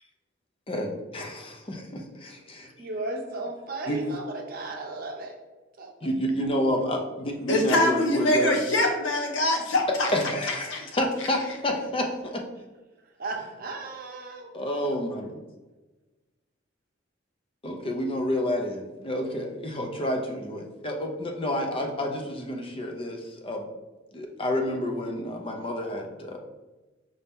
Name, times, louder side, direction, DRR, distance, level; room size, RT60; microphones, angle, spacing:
voice 1, 0.7-2.7 3.9-4.0 6.0-8.6 10.1-12.4 14.5-15.4 17.6-23.7 24.1-26.4, left 1 dB, 30° left, 3 dB, 0.6 m, -29 dB
voice 2, 2.8-5.4 5.8-6.1 13.2-14.5, right 2 dB, 50° right, 1 dB, 0.7 m, -35 dB
voice 3, 7.5-10.1 10.5-10.8, left 1 dB, 70° left, 2 dB, 0.9 m, -24 dB
5.3 x 2.8 x 3.5 m, 1.2 s
head